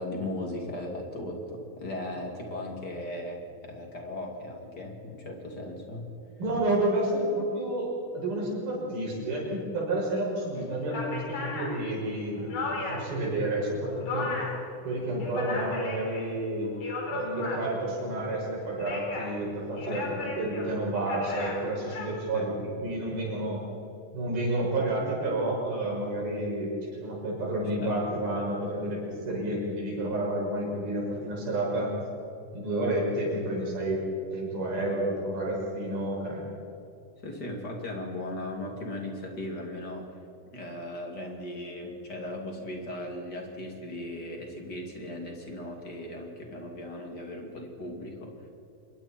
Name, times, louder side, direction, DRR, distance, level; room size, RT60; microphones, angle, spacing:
voice 1, 0.0-6.1 19.8-20.1 22.3-22.5 27.8-28.0 37.2-40.2 40.5-48.5, left 1 dB, 30° left, 1 dB, 2.9 m, -37 dB
voice 2, 6.4-14.3 14.8-16.7 17.1-23.6 24.1-26.7 27.0-31.9 32.5-34.1 34.3-36.5, right 1 dB, 80° right, -3 dB, 7.9 m, -30 dB
sound 1, 10.4-10.5 10.9-13.2 13.6-14.7 15.0-16.3 16.6-17.9 18.6-19.4 19.8-22.1, left 3 dB, 75° left, 5.7 m, -36 dB
27.0 x 22.5 x 4.5 m, 2.6 s
omnidirectional pair, 4.3 m